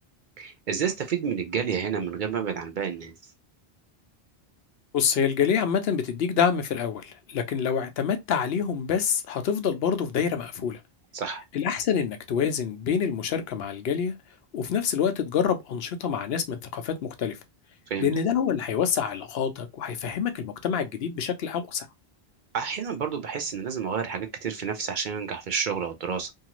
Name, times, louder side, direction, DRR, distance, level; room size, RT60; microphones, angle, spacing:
voice 1, 0.4-3.1 11.1-11.4 17.9-18.1 22.5-26.3, right 6 dB, 55° right, 0.6 m, -30 dB
voice 2, 4.9-10.8 11.5-14.1 14.5-17.4 18.0-21.9, left 7 dB, 70° left, 0.8 m, -26 dB
2.7 x 2.4 x 2.9 m
omnidirectional pair, 1.1 m